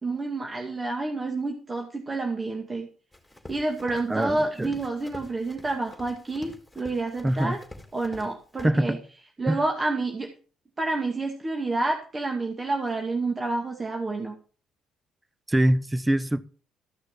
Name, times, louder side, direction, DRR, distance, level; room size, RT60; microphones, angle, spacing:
voice 1, 0.0-2.9 3.5-7.6 7.9-9.0 9.4-10.3 10.8-14.4, right 2 dB, 30° right, 2.3 m, -29 dB
Run, 3.1-8.3 8.6-8.7, left 1 dB, 10° left, 4.0 m, -46 dB
voice 2, 4.1-4.8 7.2-7.6 8.6-9.0 9.5-9.6 15.5-16.4, right 1 dB, 15° right, 1.0 m, -24 dB
14.5 x 6.4 x 5.8 m
hypercardioid pair, 50°, 0 cm